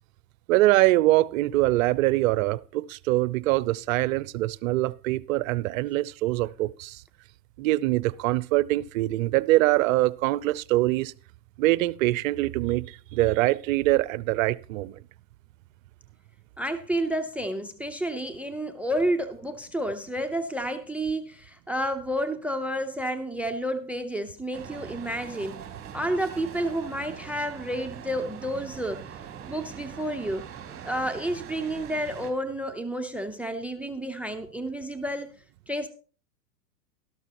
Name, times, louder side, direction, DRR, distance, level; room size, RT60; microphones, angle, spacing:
voice 1, 0.5-7.0 7.6-11.1 11.6-14.9, right 17 dB, 55° right, 0.6 m, -24 dB
voice 2, 16.6-25.6 25.9-29.1 29.5-30.5 30.8-35.3 35.7-35.9, right 1 dB, 5° right, 0.6 m, -30 dB
sound 1, 24.5-32.3, right 8 dB, 25° right, 2.7 m, -42 dB
13.0 x 12.5 x 2.9 m
hypercardioid pair, 110°, 49 cm